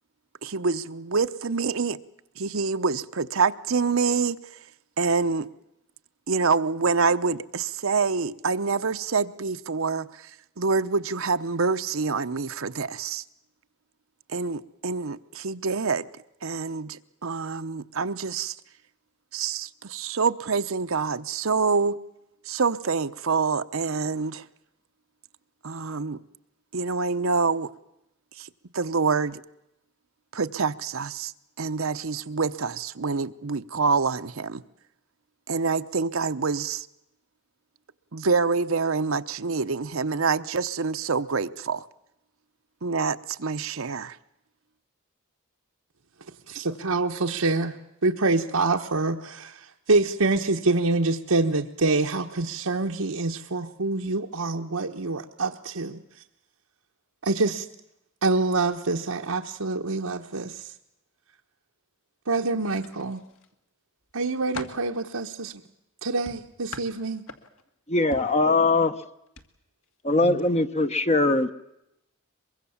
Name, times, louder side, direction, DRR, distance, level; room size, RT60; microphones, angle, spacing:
voice 1, 0.4-2.0 2.4-4.4 5.0-5.5 6.3-10.3 10.6-13.2 14.3-16.1 16.4-18.6 19.3-22.0 22.5-24.5 25.6-26.2 26.7-27.7 28.4-28.5 28.7-29.4 30.3-31.3 31.6-34.6 35.5-36.9 38.1-41.9 42.8-44.2, right 4 dB, 65° right, 0.8 m, -26 dB
voice 2, 46.5-47.8 48.0-56.0 57.2-57.7 58.2-60.7 62.3-63.2 64.1-65.6 66.0-67.2 70.2-70.4, right 3 dB, 85° right, 1.2 m, -26 dB
sound 1, 62.7-63.5 64.0-64.9 66.3-67.7 68.1-68.4 69.3-69.5 69.8-70.0, left 3 dB, 70° left, 2.0 m, -41 dB
voice 3, 67.9-69.0 70.0-71.5, left 2 dB, 30° left, 0.8 m, -21 dB
23.5 x 22.5 x 7.2 m
head